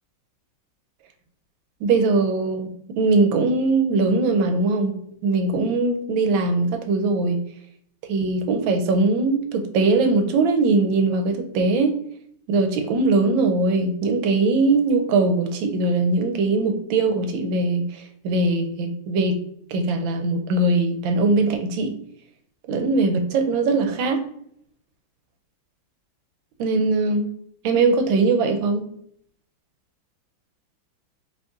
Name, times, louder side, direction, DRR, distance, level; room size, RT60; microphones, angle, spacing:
voice 1, 1.8-5.0 5.2-7.4 8.1-12.0 12.5-19.4 19.7-21.9 22.7-24.2 26.6-27.3 27.6-28.9, right 3 dB, 80° right, 5 dB, 1.4 m, -21 dB
5.0 x 3.3 x 2.4 m, 0.67 s
omnidirectional pair, 2.1 m